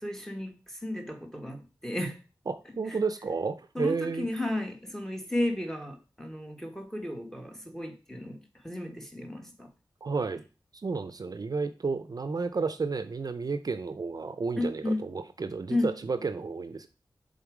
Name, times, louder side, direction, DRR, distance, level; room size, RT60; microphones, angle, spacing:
voice 1, 0.0-2.2 2.9-3.0 3.7-9.7 14.6-15.0 15.7-15.9, left 1 dB, 5° left, 1.2 m, -33 dB
voice 2, 2.5-4.3 10.0-10.4 10.8-16.9, right 4 dB, 50° right, 0.5 m, -32 dB
7.0 x 3.9 x 4.8 m
wide cardioid pair, 80°, 8 cm